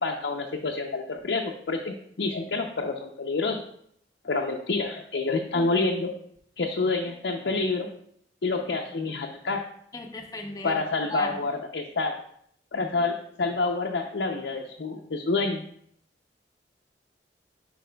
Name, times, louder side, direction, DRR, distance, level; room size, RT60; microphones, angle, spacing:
voice 1, 0.0-3.6 4.2-6.1 6.6-7.9 8.4-9.6 10.6-12.1 12.7-15.6, left 3 dB, 70° left, 0 dB, 0.6 m, -28 dB
voice 2, 9.9-11.4, left 2 dB, 20° left, 4 dB, 0.7 m, -36 dB
10.0 x 4.6 x 2.3 m, 0.68 s
head